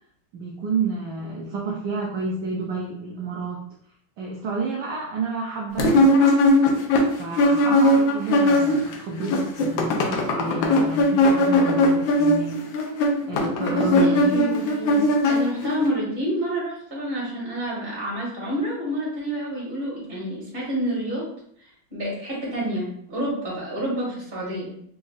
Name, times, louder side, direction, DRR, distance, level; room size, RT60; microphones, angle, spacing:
voice 1, 0.3-3.6 4.2-6.3 7.2-12.6 13.3-14.4, right 3 dB, 70° right, -2 dB, 1.1 m, -30 dB
sound 1, 5.8-8.9 9.2-15.9, left 1 dB, 80° left, 1.4 m, -19 dB
voice 2, 13.7-21.3 21.9-24.7, equal, 30° right, -5 dB, 1.7 m, -28 dB
4.1 x 3.5 x 2.4 m, 0.67 s
omnidirectional pair, 2.2 m